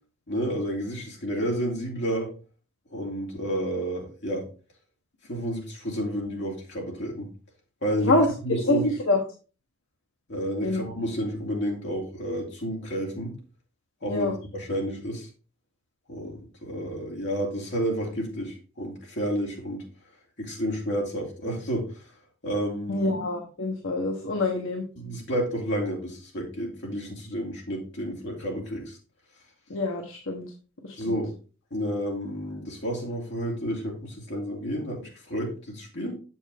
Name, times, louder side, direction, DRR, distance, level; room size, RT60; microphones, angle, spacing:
voice 1, 0.3-2.3 2.9-4.4 5.3-7.3 7.8-8.1 8.4-8.9 10.3-13.3 14.0-15.3 16.1-16.3 16.6-19.8 20.4-22.0 22.4-23.1 25.0-29.0 31.0-31.3 31.7-36.1, equal, 55° left, -2 dB, 2.8 m, -30 dB
voice 2, 8.7-9.2 10.6-10.8 14.1-14.4 22.9-24.8 29.7-30.4 30.8-31.2, left 2 dB, 70° left, 2 dB, 1.1 m, -25 dB
7.1 x 7.1 x 3.5 m, 0.36 s
head